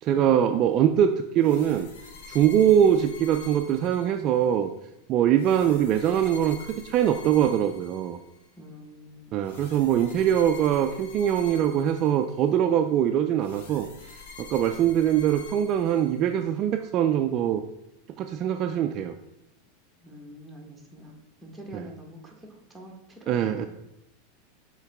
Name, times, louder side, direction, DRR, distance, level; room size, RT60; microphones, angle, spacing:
voice 1, 0.0-1.9 2.3-4.7 5.1-8.2 9.3-13.9 14.4-17.6 18.2-19.1 23.3-23.7, right 10 dB, 40° right, 7 dB, 0.3 m, -23 dB
sound 1, 1.4-4.5 5.4-8.5 9.4-12.6 13.4-16.5, left 4 dB, 80° left, 1.3 m, -47 dB
voice 2, 8.6-9.4 20.0-23.7, equal, 10° right, 1 dB, 1.3 m, -46 dB
7.0 x 3.8 x 3.5 m, 0.86 s
supercardioid pair, 125°, 0 cm